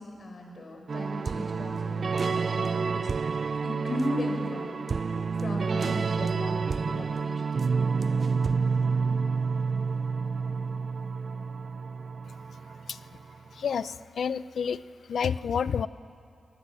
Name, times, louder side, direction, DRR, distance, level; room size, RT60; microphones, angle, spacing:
voice 1, 0.0-3.1 3.5-4.8 5.3-7.9, left 1 dB, 55° left, 2 dB, 6.5 m, -36 dB
sound 1, 0.9-13.5, right 5 dB, 55° right, 0.5 m, -29 dB
voice 2, 13.5-14.8 15.1-15.9, left 7 dB, 75° left, 16 dB, 0.6 m, -29 dB
29.5 x 19.5 x 7.6 m, 2.5 s
cardioid pair, 50°, 0 cm